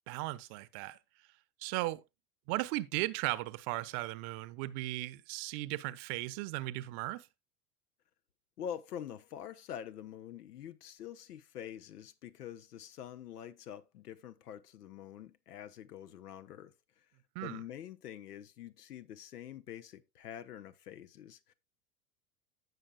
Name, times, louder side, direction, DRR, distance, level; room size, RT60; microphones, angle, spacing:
voice 1, 0.1-1.0 1.6-2.0 2.5-7.3 17.3-17.6, right 18 dB, 50° right, 1.0 m, -36 dB
voice 2, 8.6-16.7 17.4-21.5, left 10 dB, 80° left, 1.1 m, -46 dB
16.0 x 5.9 x 2.3 m
hypercardioid pair, 90°, 46 cm